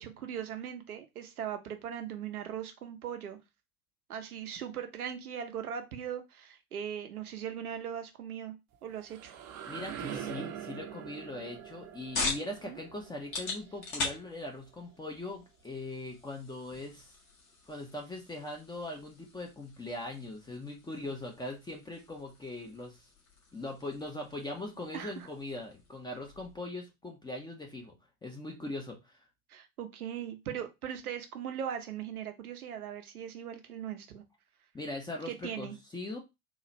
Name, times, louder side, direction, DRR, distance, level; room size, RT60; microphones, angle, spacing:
voice 1, 0.0-3.4 4.1-8.5 8.8-9.3 12.7-12.8 24.9-25.3 29.5-34.2 35.3-35.7, right 9 dB, 75° right, 6 dB, 0.8 m, -39 dB
sound 1, 8.7-14.5, right 9 dB, 40° right, 0.7 m, -44 dB
voice 2, 9.7-17.1 17.7-23.0 23.5-27.9 28.2-29.1 34.7-36.2, left 2 dB, 10° left, 1 dB, 0.7 m, -41 dB
sound 2, 11.5-26.6, left 3 dB, 40° left, 1.5 m, -43 dB
3.9 x 2.4 x 3.0 m, 0.23 s
figure-of-eight pair, 85°, 44 cm